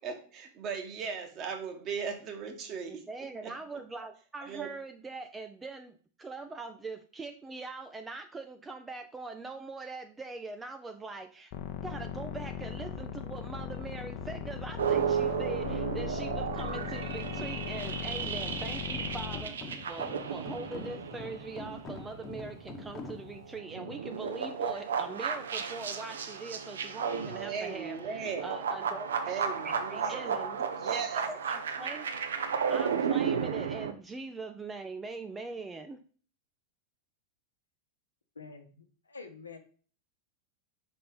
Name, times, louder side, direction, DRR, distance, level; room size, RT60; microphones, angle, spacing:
voice 1, 0.0-3.0 3.4-3.5 4.4-4.7 27.4-28.5 29.3-30.4 30.8-31.2, right 6 dB, 35° right, 5 dB, 1.3 m, -37 dB
voice 2, 2.9-11.5 11.8-29.1 29.6-30.6 31.1-32.1 32.7-36.0, right 3 dB, 15° right, 7 dB, 0.5 m, -42 dB
sound 1, 11.5-19.4, left 8 dB, 40° left, 0.8 m, -38 dB
sound 2, 14.1-23.6, left 3 dB, 25° left, 1.1 m, -46 dB
sound 3, 14.8-22.7 23.1-33.9, right 7 dB, 65° right, 0.7 m, -33 dB
voice 3, 38.3-39.6, left 4 dB, 75° left, 5 dB, 0.9 m, -47 dB
5.4 x 4.2 x 5.2 m, 0.42 s
figure-of-eight pair, 90°, 0 cm